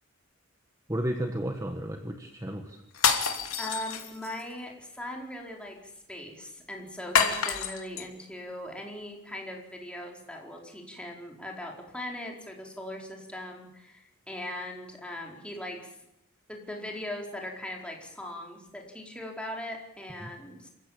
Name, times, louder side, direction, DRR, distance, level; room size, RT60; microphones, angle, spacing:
voice 1, 0.9-2.8 20.2-20.3, right 1 dB, 15° right, 4 dB, 1.5 m, -33 dB
sound 1, 2.9-4.4 7.2-8.1, left 6 dB, 70° left, 2.8 m, -27 dB
voice 2, 3.6-16.0 16.5-20.7, left 1 dB, 5° left, 0 dB, 4.4 m, -40 dB
27.0 x 15.5 x 8.8 m, 0.84 s
head